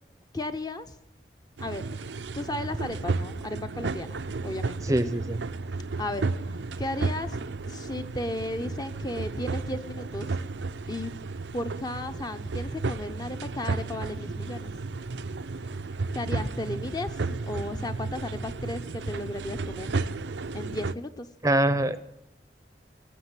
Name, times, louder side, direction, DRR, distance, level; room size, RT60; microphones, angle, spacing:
voice 1, 0.3-0.9 1.6-1.9 2.3-4.1 4.4-5.0 6.0-6.3 6.8-7.4 7.7-10.3 10.9-11.1 11.5-14.7 16.1-17.2 17.4-19.9 20.5-21.3, left 1 dB, 25° left, 9 dB, 0.8 m, -34 dB
sound 1, 1.6-21.0, right 3 dB, 85° right, 0.6 m, -33 dB
voice 2, 4.8-5.4 21.4-22.0, right 1 dB, 20° right, 13 dB, 0.7 m, -24 dB
19.5 x 7.4 x 9.8 m, 0.88 s
head